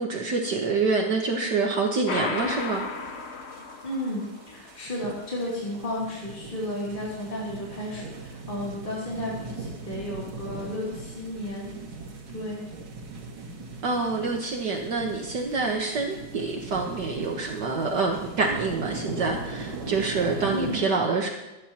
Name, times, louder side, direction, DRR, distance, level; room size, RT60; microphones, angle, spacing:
voice 1, 0.0-2.8 13.8-21.3, right 4 dB, 60° right, 1 dB, 1.8 m, -26 dB
sound 1, 2.1-4.5, left 4 dB, 45° left, 1.0 m, -34 dB
sound 2, 2.3-20.8, right 3 dB, 85° right, 2.8 m, -40 dB
voice 2, 3.8-11.7 12.3-12.6 20.5-20.8, left 1 dB, 25° left, -6 dB, 3.0 m, -33 dB
25.0 x 10.5 x 2.9 m, 1.1 s
omnidirectional pair, 2.1 m